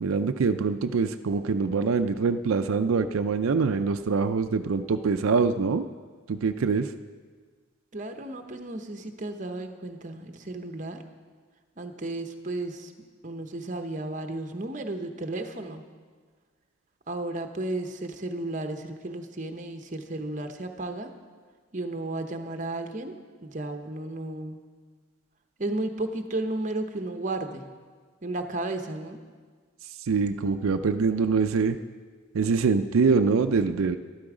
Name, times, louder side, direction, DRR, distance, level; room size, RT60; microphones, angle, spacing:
voice 1, 0.0-5.8 6.3-6.9 30.1-31.8 32.3-34.0, right 4 dB, 85° right, 8 dB, 0.5 m, -24 dB
voice 2, 7.9-11.0 11.8-12.9 13.2-15.8 17.1-21.1 21.7-23.1 23.4-24.6 25.6-27.7 28.2-29.2, right 2 dB, 35° right, 6 dB, 0.8 m, -33 dB
12.5 x 12.0 x 4.9 m, 1.5 s
head